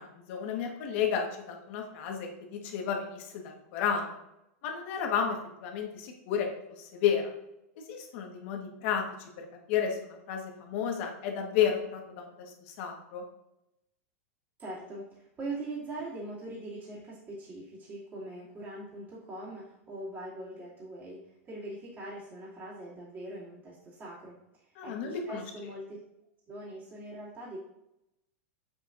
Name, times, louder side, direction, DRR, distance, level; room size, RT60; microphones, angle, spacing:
voice 1, 0.0-4.1 4.6-6.5 6.8-7.3 7.8-13.2 24.7-25.4, left 8 dB, 55° left, 2 dB, 1.5 m, -32 dB
voice 2, 14.6-26.0 26.5-27.6, right 2 dB, 25° right, -9 dB, 2.6 m, -42 dB
6.8 x 6.8 x 2.6 m, 0.86 s
supercardioid pair, 130°, 8 cm